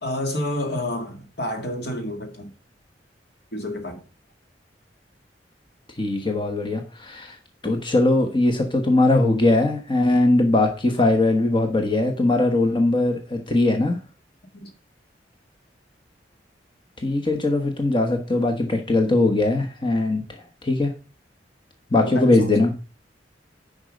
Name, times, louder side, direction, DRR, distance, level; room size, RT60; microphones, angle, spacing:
voice 1, 0.0-2.5 3.5-4.0 14.5-14.7 21.9-22.5, left 1 dB, 65° left, 2.0 m, -29 dB
voice 2, 6.0-7.4 7.6-14.0 17.0-20.2 20.6-20.9 21.9-22.7, left 2 dB, 30° left, 1.3 m, -20 dB
9.9 x 5.4 x 5.2 m
head